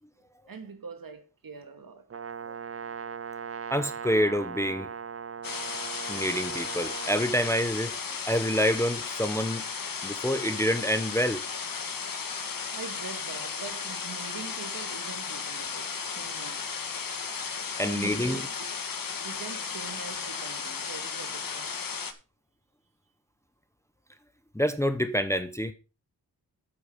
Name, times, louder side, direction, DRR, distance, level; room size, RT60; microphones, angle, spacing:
voice 1, 0.5-2.1 12.7-16.7 17.8-18.6 19.2-21.9, right 5 dB, 60° right, 2.4 m, -43 dB
Brass instrument, 2.1-7.4, right 6 dB, 35° right, 0.7 m, -39 dB
voice 2, 3.7-4.9 6.1-7.9 8.3-9.6 10.0-11.4 17.8-18.4 24.5-25.7, equal, 5° left, 0.9 m, -27 dB
sound 1, 5.4-22.1, left 5 dB, 60° left, 1.6 m, -35 dB
8.7 x 8.6 x 5.1 m
wide cardioid pair, 110°, 38 cm